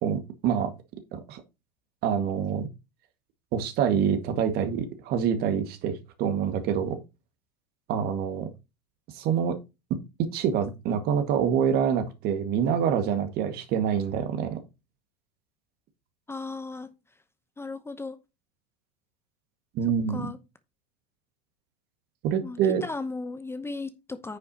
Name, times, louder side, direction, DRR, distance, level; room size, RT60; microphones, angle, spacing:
voice 1, 0.0-0.7 1.1-1.4 2.0-2.7 3.5-7.0 7.9-8.5 9.1-9.6 10.2-14.6 19.7-20.2 22.2-22.8, right 8 dB, 50° right, 1.9 m, -26 dB
voice 2, 16.3-16.9 17.6-18.2 20.1-20.4 22.4-24.4, left 3 dB, 10° left, 0.9 m, -36 dB
9.6 x 6.9 x 2.9 m
hypercardioid pair, 90°, 21 cm